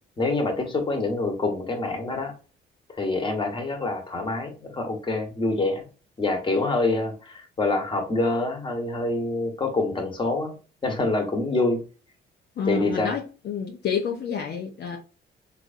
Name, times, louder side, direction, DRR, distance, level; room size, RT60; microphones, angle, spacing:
voice 1, 0.2-2.3 3.0-5.9 6.2-10.5 10.8-11.8 12.7-13.1, left 2 dB, 25° left, 1.3 m, -26 dB
voice 2, 12.6-15.0, left 6 dB, 55° left, 0.7 m, -29 dB
4.0 x 3.0 x 2.5 m
cardioid pair, 90°, 20 cm